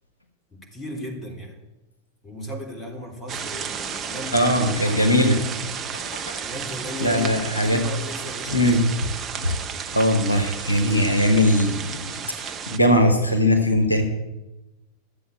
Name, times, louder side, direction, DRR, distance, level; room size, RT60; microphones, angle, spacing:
voice 1, 0.5-1.6 2.2-4.5 6.4-8.9, equal, 15° left, 1 dB, 3.5 m, -36 dB
sound 1, 3.3-12.8, right 7 dB, 25° right, 0.9 m, -33 dB
voice 2, 4.3-5.4 5.9-6.4 7.0-7.8 8.5-9.1 9.4-9.6 9.9-14.0, left 1 dB, 85° left, 3 dB, 1.7 m, -20 dB
13.0 x 7.8 x 8.6 m, 1.0 s
figure-of-eight pair, 90°, 0 cm